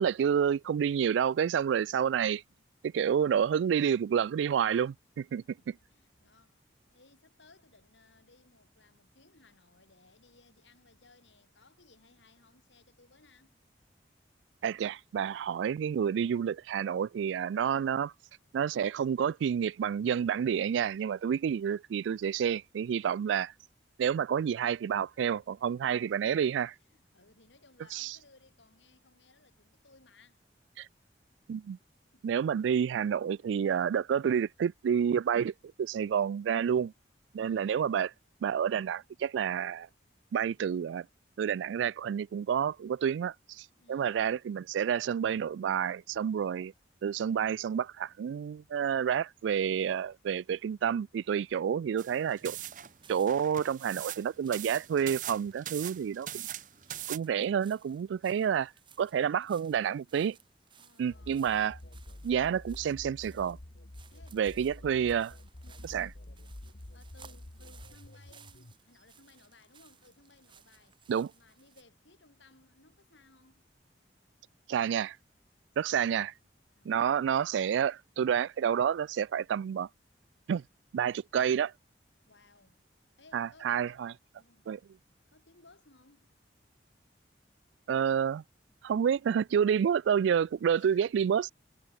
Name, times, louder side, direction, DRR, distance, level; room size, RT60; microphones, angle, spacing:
voice 1, 0.0-2.4 2.8-5.7 14.6-18.1 18.5-23.5 24.0-26.7 27.9-28.2 30.8-30.9 31.5-31.8 32.2-35.5 35.8-36.9 37.3-38.1 38.4-39.9 40.3-41.1 41.4-46.7 47.0-52.6 53.1-56.5 57.1-58.7 59.0-60.4 61.0-61.8 62.2-63.6 64.3-65.3 65.8-66.1 71.1-71.3 74.7-75.2 75.8-76.3 76.9-79.9 80.5-80.6 80.9-81.7 83.3-84.1 84.7-84.8 87.9-88.4 88.8-91.5, right 8 dB, 85° right, 0.3 m, -29 dB
voice 2, 5.6-13.6 25.9-26.4 26.8-30.4 32.1-32.3 37.3-37.9 43.7-44.4 60.8-61.8 64.1-64.4 65.6-66.2 66.9-71.0 71.3-73.7 75.8-76.2 76.7-77.0 82.3-82.8 83.2-84.0 84.4-84.7 85.3-86.3 90.8-91.1, left 3 dB, 85° left, 4.2 m, -62 dB
sound 1, 52.0-57.2, right 12 dB, 45° right, 0.9 m, -41 dB
sound 2, 52.4-71.8, right 7 dB, 25° right, 2.0 m, -61 dB
sound 3, 61.1-68.7, left 1 dB, 60° left, 1.6 m, -48 dB
head